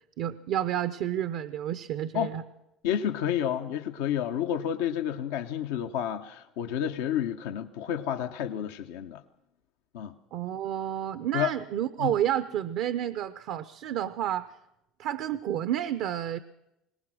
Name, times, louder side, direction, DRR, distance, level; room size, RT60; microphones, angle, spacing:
voice 1, 0.2-2.4 10.3-14.5 15.0-16.4, right 11 dB, 70° right, 13 dB, 0.7 m, -30 dB
voice 2, 2.8-9.2 9.9-10.1 11.3-11.5 12.0-12.1, left 10 dB, 85° left, 5 dB, 0.9 m, -30 dB
22.0 x 19.0 x 6.2 m, 0.87 s
supercardioid pair, 90°, 0 cm